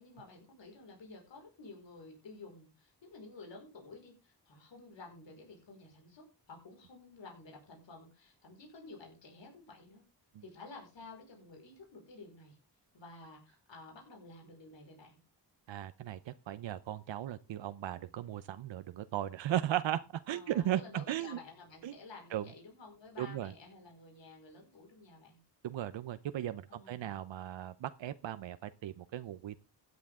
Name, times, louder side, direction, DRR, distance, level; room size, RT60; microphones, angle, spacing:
voice 1, 0.0-10.0 10.4-12.6 12.9-15.2 20.3-25.4 26.7-27.2, left 3 dB, 80° left, 1 dB, 5.2 m, -52 dB
voice 2, 15.7-21.4 21.8-21.9 22.3-22.4 23.2-23.5 25.6-29.6, right 12 dB, 85° right, 11 dB, 0.7 m, -37 dB
16.0 x 9.7 x 3.6 m, 0.31 s
wide cardioid pair, 120°, 43 cm